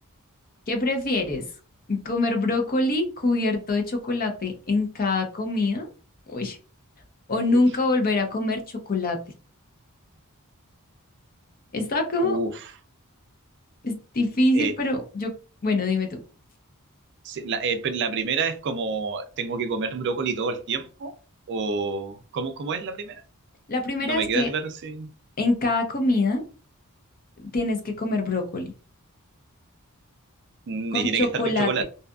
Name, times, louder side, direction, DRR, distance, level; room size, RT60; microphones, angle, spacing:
voice 1, 0.7-1.4 1.9-5.9 6.3-6.6 7.3-9.2 11.7-12.4 13.8-15.3 15.6-16.2 23.7-24.5 25.4-26.4 27.4-28.7 30.9-31.7, left 2 dB, 40° left, 0.6 m, -24 dB
voice 2, 12.2-12.7 14.5-14.7 17.2-21.1 21.5-23.2 24.0-25.1 30.7-31.8, right 4 dB, 50° right, 0.4 m, -28 dB
2.6 x 2.4 x 2.3 m
head